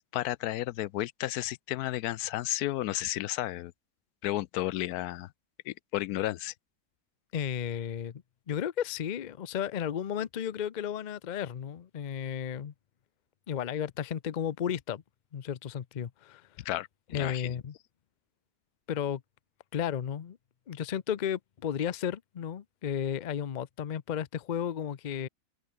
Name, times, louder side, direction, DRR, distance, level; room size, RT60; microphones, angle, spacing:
voice 1, 0.0-3.7 4.2-5.3 5.7-6.5 16.7-17.5, left 15 dB, 85° left, 1.1 m, -32 dB
voice 2, 7.3-12.7 13.5-15.0 15.3-16.4 17.1-17.7 18.9-19.2 19.7-20.4 20.7-25.3, left 9 dB, 45° left, 0.6 m, -33 dB
open air
omnidirectional pair, 1.6 m